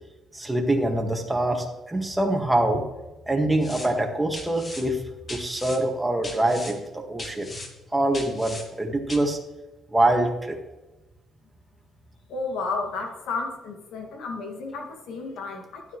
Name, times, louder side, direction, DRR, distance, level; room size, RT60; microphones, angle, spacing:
voice 1, 0.3-2.8 3.3-5.0 5.3-7.5 7.9-9.4 9.9-10.6, right 1 dB, 10° right, 1 dB, 1.8 m, -24 dB
sound 1, 3.6-3.9 4.3-4.8 5.3-5.8 6.2-6.7 7.2-7.7 8.1-8.6 9.1-9.2, left 2 dB, 35° left, 1.8 m, -38 dB
voice 2, 12.3-16.0, left 3 dB, 85° left, 2 dB, 2.1 m, -32 dB
12.0 x 9.5 x 3.2 m, 1.0 s
cardioid pair, 110°, 0 cm